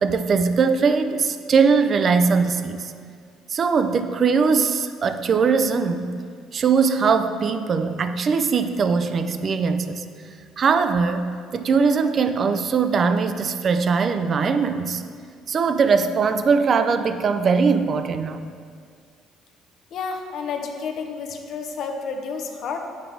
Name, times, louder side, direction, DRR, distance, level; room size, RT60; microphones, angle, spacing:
voice 1, 0.0-2.9 3.5-6.2 6.5-10.0 10.6-11.3 11.5-15.0 15.5-18.5, right 5 dB, 45° right, 9 dB, 0.4 m, -21 dB
voice 2, 19.9-22.8, left 5 dB, 60° left, 4 dB, 0.7 m, -30 dB
8.0 x 4.7 x 3.3 m, 2.1 s
supercardioid pair, 70°, 0 cm